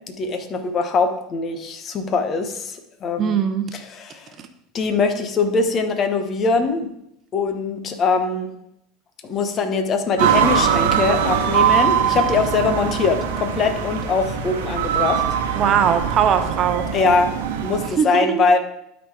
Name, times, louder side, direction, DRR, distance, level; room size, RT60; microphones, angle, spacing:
voice 1, 0.2-3.4 3.7-4.3 4.7-6.9 7.3-8.5 9.2-15.2 16.9-18.6, left 4 dB, 40° left, 8 dB, 1.1 m, -22 dB
voice 2, 3.2-3.6 15.5-16.8 18.0-18.5, right 8 dB, 40° right, 8 dB, 0.9 m, -20 dB
sound 1, 10.2-17.9, right 8 dB, 70° right, 1.1 m, -22 dB
11.5 x 4.2 x 4.8 m, 0.80 s
hypercardioid pair, 80°, 0 cm